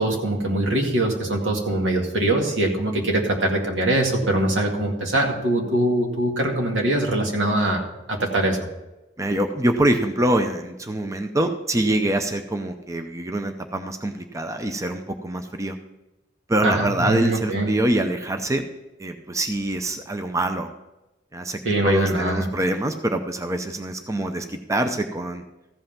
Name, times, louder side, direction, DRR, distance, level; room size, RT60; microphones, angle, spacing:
voice 1, 0.0-7.8 8.1-8.7 16.6-17.7 21.6-22.5, right 1 dB, 80° right, 1 dB, 2.0 m, -22 dB
voice 2, 9.2-15.8 16.5-18.6 19.0-20.7 21.3-25.4, right 1 dB, 15° right, 6 dB, 0.6 m, -24 dB
14.5 x 5.6 x 5.8 m, 0.99 s
head